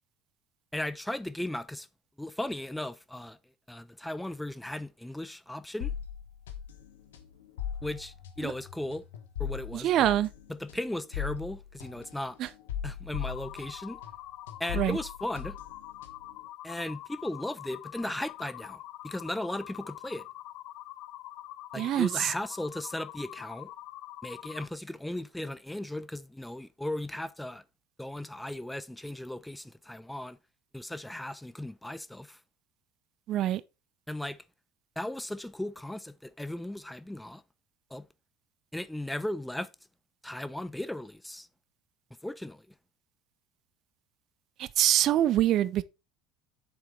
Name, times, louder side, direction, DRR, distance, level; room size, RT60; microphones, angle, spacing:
voice 1, 0.7-1.9 2.2-3.4 3.7-5.9 7.8-9.0 9.4-10.1 10.5-12.4 12.8-14.0 14.6-15.6 16.6-20.3 21.7-23.7 24.2-27.6 28.0-30.4 30.7-32.4 34.1-34.4 35.0-37.4 37.9-38.1 38.7-39.7 40.2-41.5 42.2-42.7, left 1 dB, 5° left, 0.6 m, -36 dB
sound 1, 5.8-14.2 14.5-16.4, left 9 dB, 70° left, 1.2 m, -39 dB
voice 2, 9.7-10.3 12.4-12.5 14.7-15.0 21.8-22.3 33.3-33.6 44.6-45.8, right 12 dB, 45° right, 0.5 m, -25 dB
sound 2, 13.1-24.7, left 15 dB, 55° left, 0.6 m, -45 dB
7.9 x 6.7 x 3.3 m
figure-of-eight pair, 65°, 0 cm